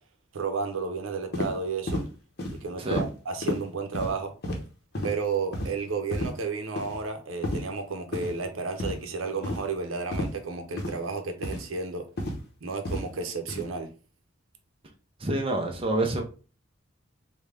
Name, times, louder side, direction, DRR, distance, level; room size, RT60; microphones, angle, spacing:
voice 1, 0.3-2.0 2.5-4.3 5.0-12.0 12.6-13.9, right 4 dB, 80° right, 0.7 m, -32 dB
sound 1, 1.3-1.5 1.9-2.1 2.4-2.6 2.9-3.1 3.4-3.6 3.9-4.1 4.4-4.6 4.9-5.1 5.5-5.7 6.1-6.3 6.8-7.0 7.4-7.6 8.1-8.3 8.8-9.0 9.4-9.6 10.1-10.3 10.8-10.9 11.4-11.6 12.2-12.4 12.9-13.0 13.5-13.6, left 1 dB, 50° left, 0.8 m, -30 dB
voice 2, 15.2-16.2, right 2 dB, 25° right, 0.5 m, -27 dB
3.7 x 2.2 x 3.3 m
head